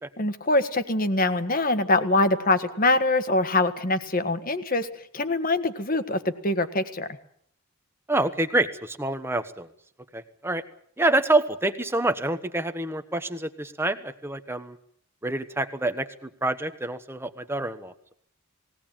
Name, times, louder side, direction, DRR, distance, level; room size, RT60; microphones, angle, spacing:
voice 1, 0.2-4.9 5.1-7.1, left 2 dB, 40° left, 11 dB, 1.6 m, -24 dB
voice 2, 8.1-9.7 10.1-10.6 11.0-14.8 15.2-17.9, right 2 dB, 10° right, 9 dB, 1.2 m, -27 dB
20.5 x 17.5 x 9.0 m, 0.65 s
head